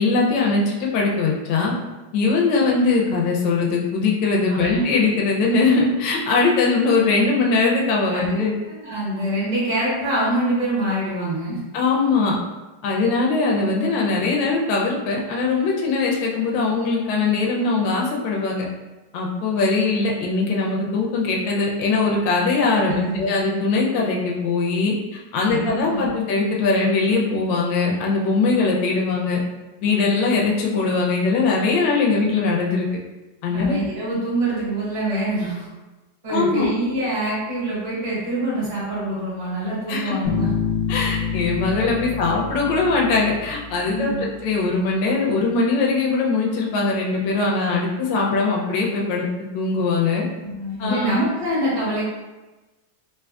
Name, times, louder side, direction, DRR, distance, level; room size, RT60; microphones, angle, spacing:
voice 1, 0.0-1.7 2.1-8.5 11.7-12.4 12.8-18.6 19.1-29.4 29.8-32.9 33.4-33.7 36.3-36.7 39.9-40.1 40.9-50.2 50.8-51.1, left 3 dB, 80° left, -2 dB, 1.2 m, -21 dB
voice 2, 8.7-11.6 22.8-23.2 25.4-26.1 33.5-35.7 36.2-40.5 41.9-42.1 43.9-44.3 50.4-52.0, right 1 dB, 25° right, -9 dB, 1.0 m, -25 dB
Bass guitar, 40.2-43.9, left 6 dB, 65° left, 0.8 m, -27 dB
3.5 x 2.7 x 2.3 m, 1.1 s
omnidirectional pair, 2.1 m